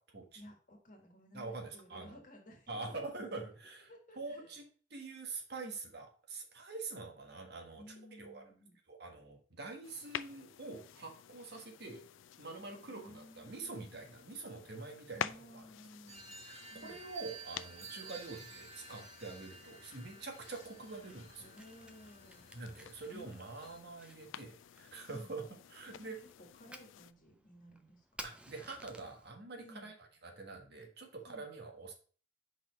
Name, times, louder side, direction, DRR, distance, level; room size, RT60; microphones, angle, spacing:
voice 1, 0.3-3.4 3.9-4.6 5.5-5.7 7.8-8.8 12.8-14.4 15.1-16.3 16.6-17.0 21.4-22.5 23.1-24.0 25.0-25.3 25.8-26.1 26.4-28.2 29.6-29.9 31.3-31.5, equal, 45° left, 2 dB, 1.7 m, -56 dB
voice 2, 1.3-2.2 2.7-3.9 4.1-4.6 4.9-7.8 8.1-8.4 8.9-12.0 12.4-15.2 15.5-15.6 16.4-21.4 22.5-26.2 28.2-29.9 30.2-31.9, right 3 dB, 55° right, 3 dB, 1.5 m, -45 dB
sound 1, 9.8-27.1, left 9 dB, 85° left, 0.4 m, -50 dB
sound 2, 16.1-23.8, right 4 dB, 40° right, 2.6 m, -53 dB
Fire, 20.9-29.3, right 1 dB, 5° right, 0.6 m, -56 dB
5.2 x 4.3 x 5.2 m, 0.40 s
head